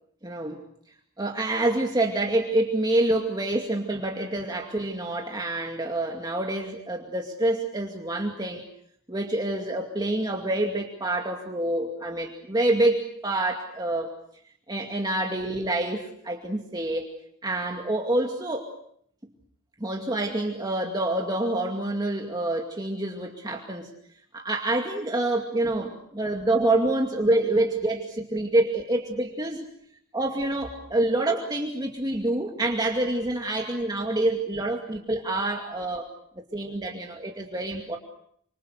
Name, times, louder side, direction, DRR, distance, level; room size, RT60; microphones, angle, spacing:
voice 1, 0.2-0.6 1.2-8.6 9.1-14.1 14.7-17.1 17.4-18.7 19.8-23.9 24.3-29.7 30.1-36.1 36.5-38.0, right 2 dB, 20° right, 1 dB, 2.4 m, -27 dB
28.5 x 27.0 x 6.6 m, 0.67 s
head